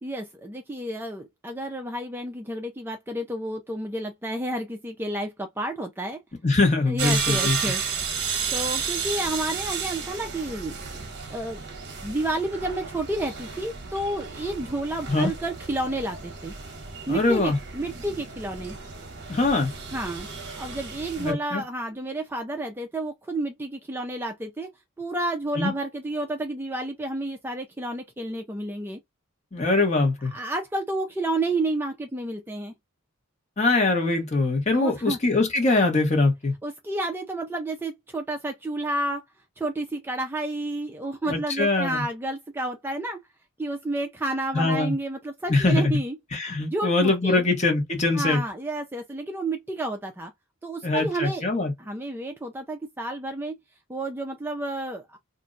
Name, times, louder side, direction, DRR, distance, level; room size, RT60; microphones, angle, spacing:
voice 1, 0.0-6.2 6.9-7.8 8.5-10.8 11.3-11.6 12.0-16.5 17.1-18.8 19.9-20.3 20.6-24.7 25.0-29.0 30.3-32.7 34.7-35.2 36.6-39.2 39.6-43.2 43.6-46.2 46.7-47.5 48.1-50.3 50.6-51.5 51.8-53.6 53.9-55.2, right 1 dB, 10° right, 0.4 m, -30 dB
voice 2, 6.4-7.6 15.1-15.3 17.1-17.6 19.3-19.7 21.2-21.6 25.6-25.7 29.5-30.3 33.6-36.5 41.3-42.0 44.5-44.9 45.5-45.9 46.3-48.4 50.8-51.7, left 3 dB, 30° left, 1.1 m, -22 dB
sound 1, 7.0-21.3, right 6 dB, 55° right, 0.9 m, -33 dB
2.5 x 2.2 x 3.8 m
head